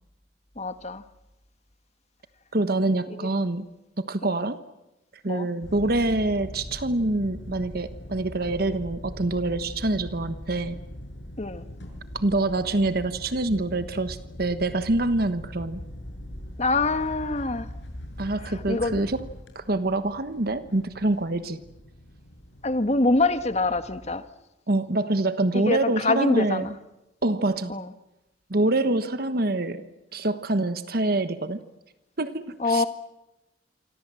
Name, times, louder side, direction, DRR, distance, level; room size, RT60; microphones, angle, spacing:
voice 1, 0.6-1.0 3.2-3.3 4.2-4.4 5.3-5.5 11.4-11.6 16.6-17.7 18.4-19.0 22.6-24.2 25.5-26.7 27.7-27.9 32.6-32.9, left 2 dB, 35° left, 10 dB, 1.4 m, -25 dB
voice 2, 2.5-3.7 4.0-4.6 5.2-10.8 12.1-15.8 18.2-19.3 19.5-21.6 24.7-26.7 27.2-27.8 28.5-31.6 32.2-32.8, right 2 dB, 55° right, 11 dB, 1.3 m, -26 dB
sound 1, 5.6-24.1, left 1 dB, 90° left, 6.6 m, -41 dB
28.0 x 25.0 x 7.7 m, 0.98 s
head